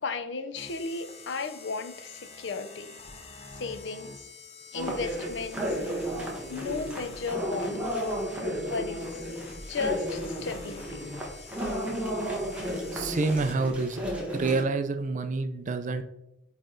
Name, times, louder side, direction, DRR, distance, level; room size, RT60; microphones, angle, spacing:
voice 1, 0.0-2.9 3.6-4.1 4.7-5.8 6.5-7.8 8.6-9.2 9.7-11.1, left 4 dB, 70° left, 10 dB, 0.6 m, -34 dB
sound 1, 0.5-14.0, left 4 dB, 35° left, 0.7 m, -48 dB
sound 2, 4.7-14.6, right 1 dB, 5° right, 1.3 m, -33 dB
voice 2, 12.9-14.0 14.3-16.0, right 3 dB, 40° right, 9 dB, 0.4 m, -28 dB
8.5 x 3.3 x 3.8 m, 0.86 s
head